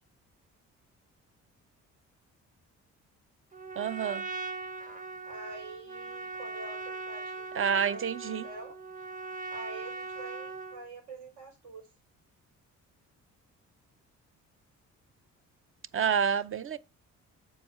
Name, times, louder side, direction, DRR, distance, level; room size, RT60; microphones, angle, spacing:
Trumpet, 3.5-10.8, right 3 dB, 25° right, 1.3 m, -40 dB
voice 1, 3.8-4.2 7.5-8.4 15.9-16.8, right 7 dB, 45° right, 0.6 m, -28 dB
voice 2, 5.2-8.8 9.5-11.9, right 3 dB, 75° right, 4.6 m, -46 dB
7.1 x 4.6 x 4.3 m
cardioid pair, 90°, 30 cm